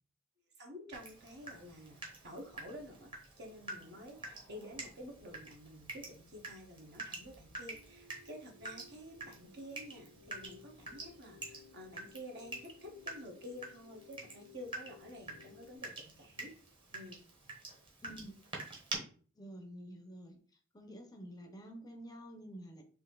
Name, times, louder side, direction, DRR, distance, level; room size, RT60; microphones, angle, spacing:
voice 1, 0.6-3.1 3.4-16.5 16.9-17.2, equal, 60° right, 2 dB, 1.2 m, -50 dB
Water tap faucet / Drip, 0.9-19.0, right 2 dB, 25° right, 1.2 m, -48 dB
sound 1, 7.7-15.8, left 6 dB, 90° right, 1.0 m, -60 dB
voice 2, 18.0-18.3 19.4-20.4 20.7-22.8, equal, 20° left, 5 dB, 0.6 m, -49 dB
4.4 x 2.8 x 3.8 m, 0.43 s
head